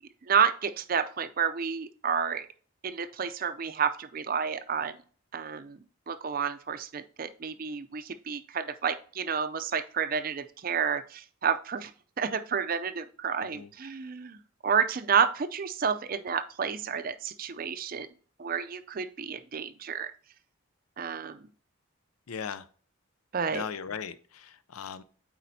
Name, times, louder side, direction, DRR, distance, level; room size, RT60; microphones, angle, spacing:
voice 1, 0.2-2.5 2.8-5.0 5.3-5.8 6.1-11.9 12.2-18.1 18.4-20.1 21.0-21.5 23.3-23.6, right 6 dB, 40° right, 0.4 m, -30 dB
voice 2, 22.3-22.7 23.5-25.0, left 6 dB, 90° left, 0.5 m, -38 dB
8.3 x 4.2 x 2.7 m
head